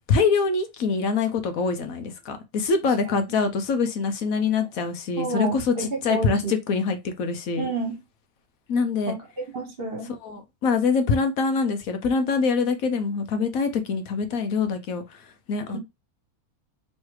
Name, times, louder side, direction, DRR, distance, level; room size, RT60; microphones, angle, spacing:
voice 1, 0.1-7.7 8.7-9.1 10.2-15.2 15.5-15.8, left 5 dB, 70° left, 1.1 m, -24 dB
voice 2, 5.2-6.5 7.6-8.0 9.1-9.2 9.5-10.1 15.7-15.8, right 3 dB, 40° right, 1.3 m, -29 dB
3.2 x 3.1 x 4.6 m
omnidirectional pair, 1.6 m